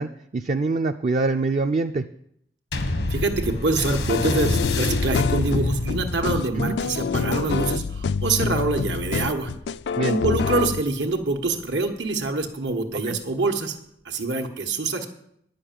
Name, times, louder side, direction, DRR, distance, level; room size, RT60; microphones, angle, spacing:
voice 1, 0.0-2.0 6.6-6.8 10.0-10.2 13.1-13.2, right 3 dB, 40° right, 7 dB, 0.4 m, -24 dB
sound 1, 2.7-11.5 12.2-12.3, left 2 dB, 90° left, 1.3 m, -30 dB
voice 2, 3.1-9.5 10.0-13.8 14.0-15.1, right 3 dB, 90° right, 5 dB, 1.4 m, -25 dB
sound 2, 4.1-10.8, left 5 dB, 70° left, 0.3 m, -26 dB
10.5 x 6.5 x 9.1 m, 0.72 s
head